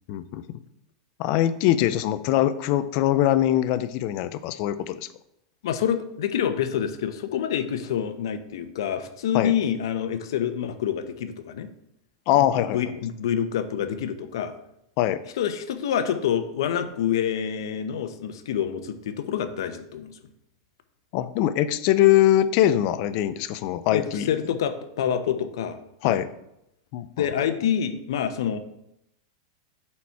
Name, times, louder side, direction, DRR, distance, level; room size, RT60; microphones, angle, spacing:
voice 1, 0.1-0.5 1.2-5.1 9.3-9.5 12.3-12.8 15.0-15.2 21.1-24.3 26.0-26.3 26.9-27.3, left 12 dB, 40° left, 13 dB, 0.4 m, -22 dB
voice 2, 5.6-11.7 12.4-14.5 15.4-20.2 23.9-25.8 26.0-26.2 27.2-28.6, left 9 dB, 70° left, 10 dB, 0.8 m, -27 dB
8.6 x 4.3 x 4.7 m, 0.81 s
supercardioid pair, 170°, 2 cm